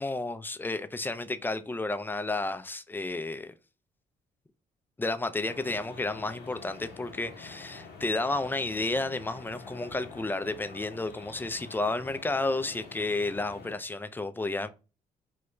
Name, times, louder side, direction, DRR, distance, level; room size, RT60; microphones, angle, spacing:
voice 1, 0.0-3.5 5.0-14.7, left 2 dB, 10° left, 0.3 m, -32 dB
sound 1, 5.4-13.7, left 4 dB, 65° left, 0.7 m, -47 dB
2.3 x 2.1 x 2.9 m
hypercardioid pair, 50°, 18 cm